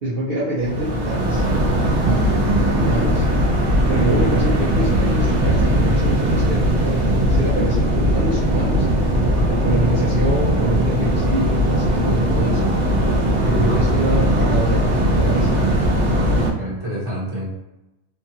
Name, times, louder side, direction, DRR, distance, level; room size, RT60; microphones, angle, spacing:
voice 1, 0.0-1.4 2.0-3.2 3.9-8.9 9.5-12.7 13.4-15.6, right 1 dB, 60° right, -7 dB, 0.8 m, -25 dB
sound 1, 0.6-16.5, equal, 80° right, 1.1 m, -19 dB
voice 2, 1.8-2.2 9.3-9.7 13.2-13.9 16.6-17.5, right 1 dB, 25° right, -8 dB, 1.1 m, -28 dB
2.8 x 2.4 x 2.7 m, 0.98 s
omnidirectional pair, 1.2 m